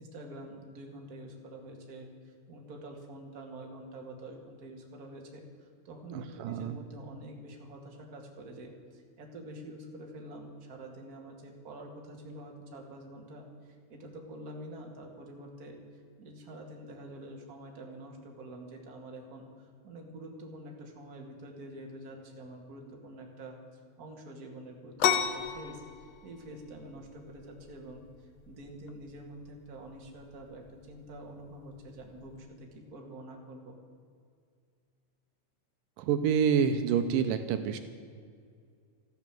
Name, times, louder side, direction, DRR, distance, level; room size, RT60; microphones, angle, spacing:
voice 1, 0.0-25.8 26.2-33.8, right 1 dB, 30° right, 1 dB, 2.2 m, -47 dB
voice 2, 6.1-6.8 36.0-37.8, right 7 dB, 80° right, 8 dB, 2.4 m, -27 dB
sound 1, 25.0-32.4, left 9 dB, 70° left, 1.8 m, -35 dB
14.0 x 12.5 x 7.7 m, 2.2 s
omnidirectional pair, 4.0 m